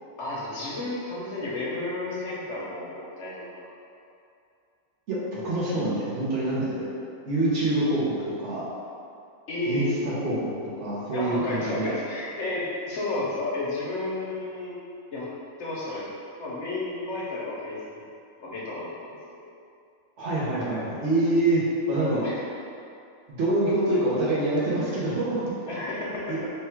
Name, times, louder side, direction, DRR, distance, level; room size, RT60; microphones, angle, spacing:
voice 1, 0.2-3.5 9.5-9.9 11.1-14.8 15.1-15.3 15.6-16.1 16.4-17.8 18.4-19.5 22.2-22.4 25.7-26.5, left 2 dB, 60° left, -6 dB, 0.9 m, -32 dB
voice 2, 5.1-6.9 7.3-8.7 9.7-10.5 10.8-11.9 20.2-22.2 23.3-25.5 26.3-26.4, right 1 dB, 60° right, -8 dB, 1.1 m, -26 dB
3.4 x 2.3 x 4.3 m, 2.5 s
omnidirectional pair, 1.4 m